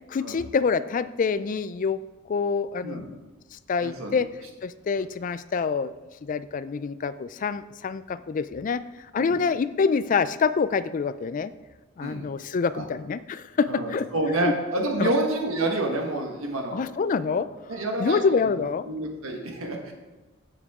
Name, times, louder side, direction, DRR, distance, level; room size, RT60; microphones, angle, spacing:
voice 1, 0.1-2.0 2.3-3.2 3.5-4.3 4.6-5.9 6.2-8.8 9.1-11.5 12.0-14.1 14.4-14.5 15.0-15.1 16.7-17.5 18.0-18.8, left 5 dB, 40° left, 14 dB, 0.3 m, -26 dB
voice 2, 3.8-4.2 9.2-9.4 12.0-12.3 12.7-12.8 13.7-16.8 17.4-19.9, right 1 dB, 80° right, 2 dB, 1.4 m, -29 dB
9.5 x 7.3 x 3.6 m, 1.2 s
head